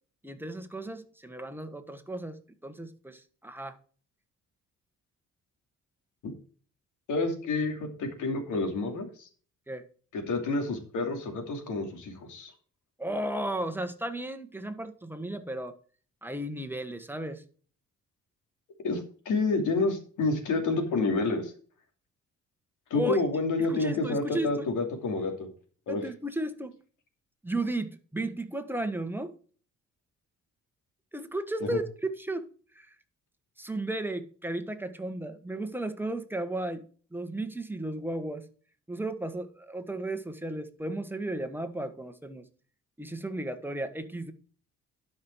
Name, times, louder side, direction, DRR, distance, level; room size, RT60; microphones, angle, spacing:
voice 1, 0.2-3.8 9.7-9.9 13.0-15.8 16.2-17.4 22.9-23.2 23.6-24.7 25.9-26.8 27.4-29.4 31.1-32.5 32.7-32.9 33.6-38.4 38.9-42.5 43.0-44.3, right 1 dB, 5° right, 1.4 m, -34 dB
voice 2, 7.1-9.3 10.1-12.5 18.8-21.5 22.9-25.5 25.9-26.1 31.7-31.8, left 3 dB, 80° left, 2.7 m, -29 dB
12.0 x 5.7 x 4.7 m
cardioid pair, 90°, 30 cm